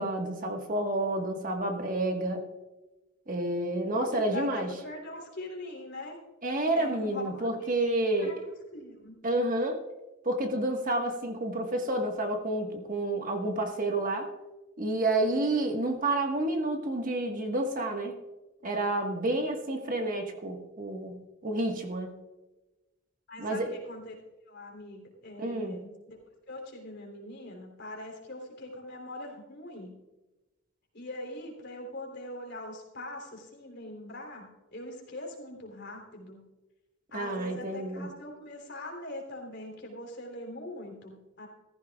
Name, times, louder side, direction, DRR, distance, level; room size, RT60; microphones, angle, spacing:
voice 1, 0.0-2.4 3.3-4.7 6.4-8.4 9.2-9.8 10.2-14.3 14.8-18.1 18.6-22.1 23.4-23.7 25.4-25.8 37.1-38.1, right 1 dB, 45° right, 3 dB, 1.6 m, -29 dB
voice 2, 3.7-6.2 6.7-7.8 8.2-9.2 23.3-24.2 24.5-26.2 26.5-29.9 30.9-36.4 37.1-41.5, left 1 dB, 60° left, 0 dB, 3.6 m, -42 dB
15.0 x 15.0 x 2.4 m, 1.1 s
head